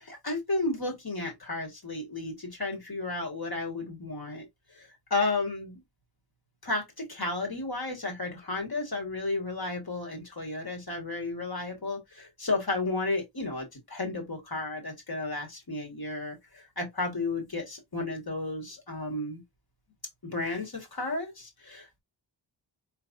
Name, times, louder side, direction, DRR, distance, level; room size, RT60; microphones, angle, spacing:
voice 1, 0.0-4.4 4.7-5.8 6.6-19.4 20.2-22.0, left 2 dB, 50° left, 1.7 m, -33 dB
4.6 x 3.4 x 2.6 m
wide cardioid pair, 70°, 46 cm